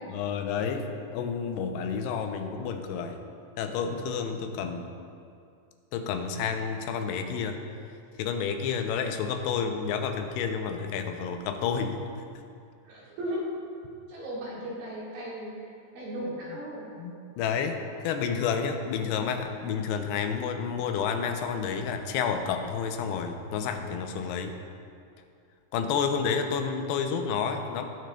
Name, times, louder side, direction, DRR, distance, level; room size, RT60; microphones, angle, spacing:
voice 1, 0.1-3.2 3.6-4.9 5.9-7.6 8.2-12.0 17.0-17.8 18.0-24.5 25.7-27.9, left 6 dB, 85° left, 6 dB, 2.7 m, -30 dB
voice 2, 12.8-13.5 14.1-15.6 15.9-17.0, equal, 70° right, -6 dB, 3.5 m, -36 dB
18.0 x 6.3 x 2.3 m, 2.4 s
omnidirectional pair, 4.6 m